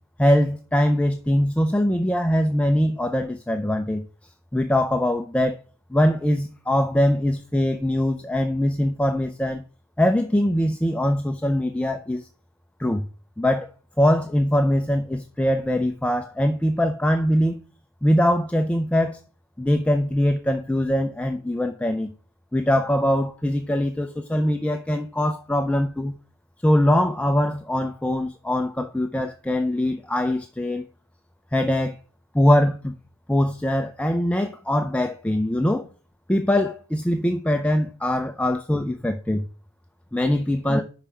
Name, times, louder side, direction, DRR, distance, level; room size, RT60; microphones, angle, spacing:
voice 1, 0.2-4.0 4.5-5.6 5.9-9.6 10.0-12.3 12.8-13.0 13.4-13.7 14.0-17.6 18.0-19.2 19.6-22.1 22.5-26.2 26.6-30.8 31.5-32.0 32.3-33.0 33.3-35.9 36.3-39.4 40.1-40.8, left 1 dB, 5° left, 0.4 m, -22 dB
5.6 x 5.3 x 6.0 m
head